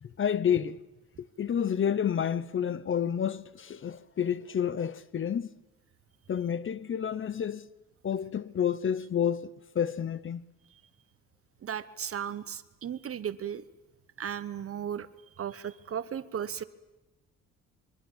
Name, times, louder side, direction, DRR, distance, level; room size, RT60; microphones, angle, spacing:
voice 1, 0.0-0.8 1.2-5.5 6.3-7.7 8.0-10.4, left 8 dB, 40° left, 0.8 m, -30 dB
voice 2, 11.6-13.6 14.2-15.1 15.4-16.6, right 9 dB, 50° right, 1.1 m, -35 dB
26.5 x 23.5 x 7.3 m
cardioid pair, 90°, 30 cm